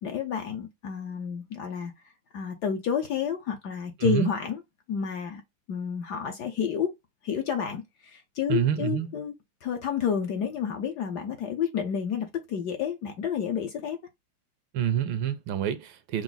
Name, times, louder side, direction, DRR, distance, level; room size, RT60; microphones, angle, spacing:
voice 1, 0.0-1.9 2.3-4.6 4.9-5.4 5.7-6.9 7.2-9.3 9.6-14.0, left 7 dB, 65° left, 1.1 m, -30 dB
voice 2, 4.0-4.3 8.5-9.1 14.7-16.2, right 10 dB, 75° right, 1.3 m, -27 dB
4.7 x 2.0 x 3.8 m
omnidirectional pair, 2.3 m